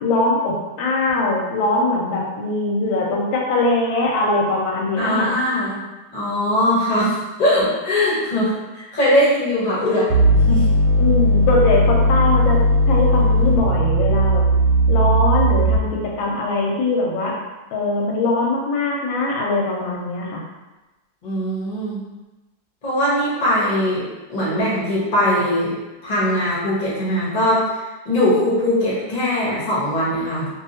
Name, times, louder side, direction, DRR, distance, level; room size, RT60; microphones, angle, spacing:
voice 1, 0.0-5.3 11.0-12.6 12.9-14.4 14.9-17.4 17.7-20.4, left 2 dB, 90° left, -1 dB, 1.4 m, -21 dB
voice 2, 5.0-5.8 6.1-10.1 10.5-10.7 21.2-22.0 22.8-25.7 26.0-30.5, left 1 dB, 35° left, -7 dB, 0.8 m, -20 dB
sound 1, 10.1-16.1, equal, 70° right, 1.2 m, -17 dB
2.9 x 2.7 x 2.7 m, 1.1 s
omnidirectional pair, 2.1 m